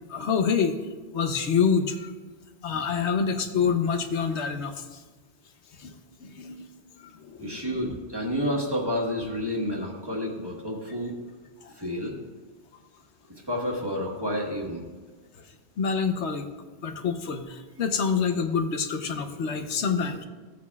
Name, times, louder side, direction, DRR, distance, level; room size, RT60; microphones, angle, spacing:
voice 1, 0.1-0.8 1.1-2.1 2.6-5.0 5.8-5.9 6.2-6.7 7.2-7.8 11.6-11.7 15.8-16.5 16.8-20.2, left 6 dB, 80° left, 7 dB, 1.1 m, -27 dB
voice 2, 7.4-11.2 11.8-12.1 13.5-14.8, equal, 20° right, -1 dB, 1.4 m, -30 dB
15.0 x 8.3 x 2.3 m, 1.3 s
omnidirectional pair, 1.2 m